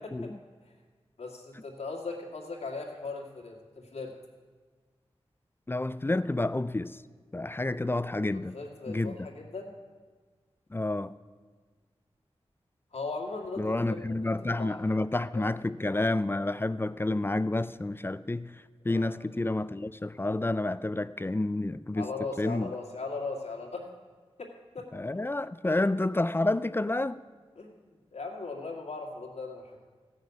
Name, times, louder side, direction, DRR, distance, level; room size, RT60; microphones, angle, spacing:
voice 1, 1.2-4.1 8.3-9.7 12.9-14.3 14.6-15.4 18.9-19.1 22.0-23.9 24.4-24.5 24.7-24.9 27.6-27.8 28.1-29.8, left 3 dB, 80° left, 0 dB, 2.1 m, -38 dB
voice 2, 5.7-7.0 7.3-8.6 8.9-9.1 10.7-11.1 13.6-18.5 18.9-22.1 22.4-22.7 24.9-27.2, left 2 dB, 20° left, 16 dB, 0.4 m, -29 dB
15.0 x 6.5 x 8.1 m, 1.5 s
wide cardioid pair, 65°, 11 cm